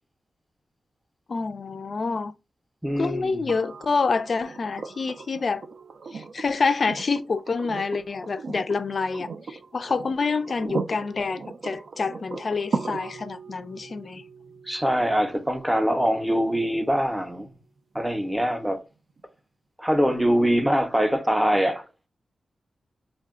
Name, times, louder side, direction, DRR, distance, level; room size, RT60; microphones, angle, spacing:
voice 1, 1.3-2.3 3.0-5.7 6.1-14.2, left 4 dB, 50° left, 0.3 m, -27 dB
voice 2, 2.8-3.5 14.7-17.5 17.9-18.8 19.8-21.9, equal, 5° right, 0.5 m, -23 dB
sound 1, 3.5-17.4 19.2-19.3, right 4 dB, 70° right, 0.3 m, -38 dB
2.6 x 2.1 x 3.6 m
wide cardioid pair, 115°, 0 cm